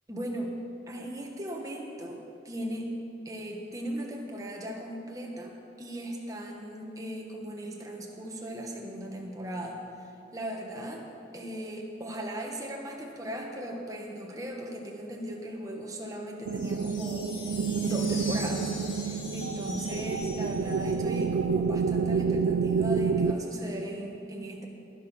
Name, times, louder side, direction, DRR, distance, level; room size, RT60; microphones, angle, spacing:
voice 1, 0.1-0.5 0.9-2.9 3.2-5.5 5.8-11.0 11.3-17.3 17.8-24.7, right 1 dB, 20° right, 0 dB, 1.4 m, -38 dB
sound 1, 16.4-21.2, left 3 dB, 85° left, 3.4 m, -42 dB
sound 2, 16.4-23.3, right 5 dB, 75° right, 0.5 m, -28 dB
19.0 x 6.5 x 5.7 m, 2.8 s
head